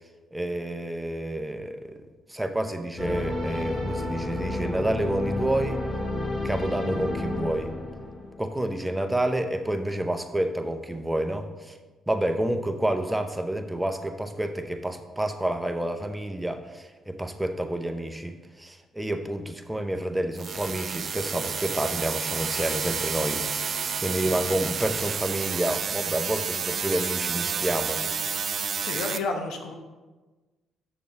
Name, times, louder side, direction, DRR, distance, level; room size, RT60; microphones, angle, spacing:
voice 1, 0.3-2.0 2.3-5.8 6.4-7.7 8.4-11.8 12.1-23.4 24.0-28.0, right 1 dB, 10° right, 6 dB, 0.8 m, -29 dB
sound 1, 3.0-8.5, left 2 dB, 40° left, 2.4 m, -30 dB
sound 2, 20.4-29.2, right 6 dB, 50° right, 0.4 m, -30 dB
voice 2, 28.8-29.7, left 3 dB, 80° left, 4 dB, 0.8 m, -31 dB
6.7 x 6.2 x 4.1 m, 1.2 s
supercardioid pair, 65°, 0 cm